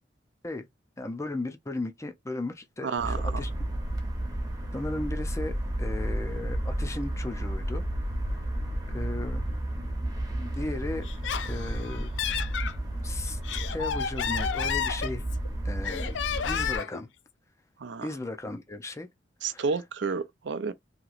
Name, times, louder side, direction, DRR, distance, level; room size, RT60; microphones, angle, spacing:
voice 1, 1.0-3.6 4.7-7.8 8.3-8.4 8.9-9.4 10.4-11.1 11.4-12.1 13.0-13.4 13.7-15.2 15.6-17.1 18.0-19.1 19.5-19.7, left 2 dB, 15° left, 0.5 m, -36 dB
voice 2, 2.8-3.3 17.8-18.1 19.4-20.7, right 5 dB, 75° right, 0.5 m, -30 dB
sound 1, 3.0-16.8, right 1 dB, 20° right, 0.8 m, -32 dB
Laughter, 11.0-12.7 13.3-15.5 15.8-17.0, left 8 dB, 80° left, 0.4 m, -31 dB
2.9 x 2.8 x 2.4 m
head